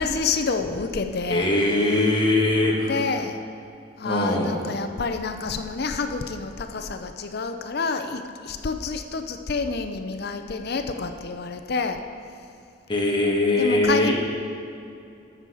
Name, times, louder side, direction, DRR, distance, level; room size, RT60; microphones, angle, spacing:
voice 1, 0.0-1.5 2.9-3.4 4.0-12.0 13.6-14.1, left 4 dB, 50° left, 7 dB, 0.6 m, -28 dB
voice 2, 1.3-2.9 4.0-4.6 12.9-14.1, left 2 dB, 25° left, -2 dB, 1.5 m, -21 dB
12.5 x 7.8 x 4.8 m, 2.5 s
head